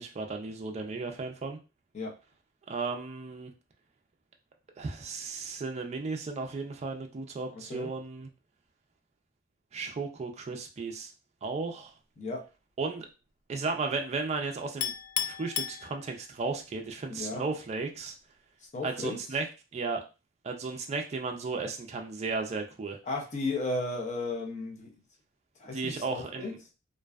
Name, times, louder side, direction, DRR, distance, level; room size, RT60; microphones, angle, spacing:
voice 1, 0.0-1.6 2.7-3.5 4.8-8.3 9.7-11.1 11.4-11.9 12.8-13.1 13.5-14.9 15.2-18.2 18.8-19.5 19.7-20.0 20.4-23.0 25.6-26.6, right 4 dB, 30° right, 4 dB, 0.3 m, -34 dB
Chink clink, 14.8-16.5, left 10 dB, 80° left, 0.3 m, -34 dB
voice 2, 17.1-17.4 18.7-19.2 23.1-24.9 25.6-26.5, left 2 dB, 35° left, 1 dB, 0.6 m, -34 dB
2.5 x 2.2 x 2.3 m, 0.30 s
head